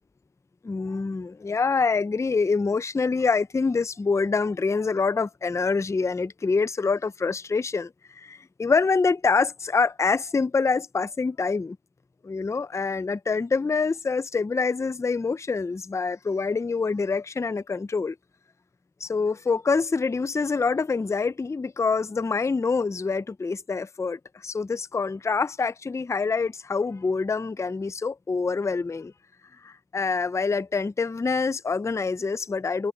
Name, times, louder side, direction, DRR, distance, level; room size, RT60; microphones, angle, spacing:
voice 1, 0.6-11.8 12.2-18.2 19.0-29.1 29.6-32.9, left 4 dB, 10° left, 0.4 m, -26 dB
cardioid pair, 90°, 30 cm